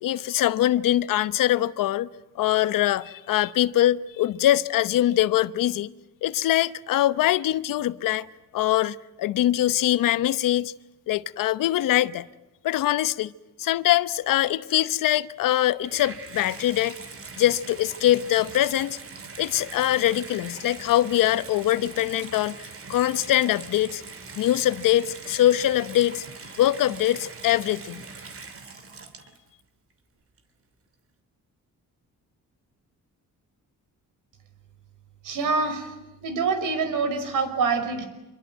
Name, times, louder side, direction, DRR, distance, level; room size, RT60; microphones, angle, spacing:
voice 1, 0.0-2.1 2.4-5.9 6.2-8.3 8.5-10.7 11.1-12.2 12.6-13.3 13.6-17.0 17.4-19.0 19.4-24.0 24.4-26.2 26.6-28.0, left 13 dB, 80° left, 1.0 m, -23 dB
Water tap faucet / Bathtub (filling or washing), 15.5-29.6 30.4-30.5, right 4 dB, 45° right, 3.1 m, -42 dB
voice 2, 35.2-35.9 36.2-38.1, right 4 dB, 75° right, 5.6 m, -25 dB
26.5 x 23.0 x 9.2 m
cardioid pair, 120°, 32 cm